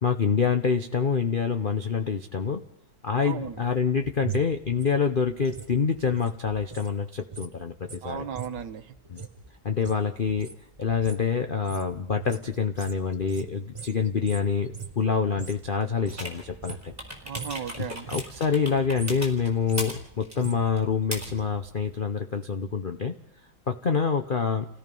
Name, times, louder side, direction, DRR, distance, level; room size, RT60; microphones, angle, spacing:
voice 1, 0.0-2.6 3.0-8.3 9.1-9.2 9.6-10.5 10.8-16.9 17.8-23.1 23.7-24.7, left 5 dB, 65° left, 5 dB, 0.5 m, -26 dB
voice 2, 3.2-3.6 8.0-8.9 17.2-18.1, right 7 dB, 65° right, 9 dB, 1.7 m, -35 dB
sound 1, 3.5-6.9 7.2-15.7 16.0-17.0 17.3-17.7 17.9-18.4 18.8-21.4 21.7-21.8, right 6 dB, 40° right, 0.4 m, -41 dB
sound 2, 16.1-22.0, right 1 dB, 5° right, 4.0 m, -40 dB
28.5 x 17.0 x 5.4 m, 0.76 s
omnidirectional pair, 2.2 m